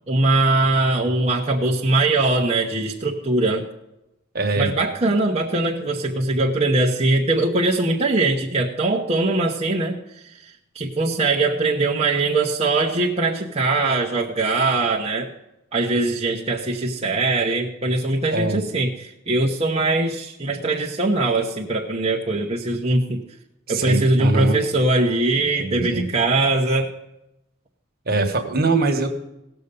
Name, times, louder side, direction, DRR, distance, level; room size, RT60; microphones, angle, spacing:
voice 1, 0.1-3.6 4.5-10.0 10.4-15.3 15.7-23.2 23.7-26.9, right 2 dB, 30° right, -3 dB, 0.9 m, -21 dB
voice 2, 4.3-4.7 18.3-18.6 23.7-24.6 25.6-26.0 28.1-29.1, right 3 dB, 45° right, 4 dB, 1.4 m, -22 dB
17.5 x 6.8 x 5.3 m, 0.88 s
head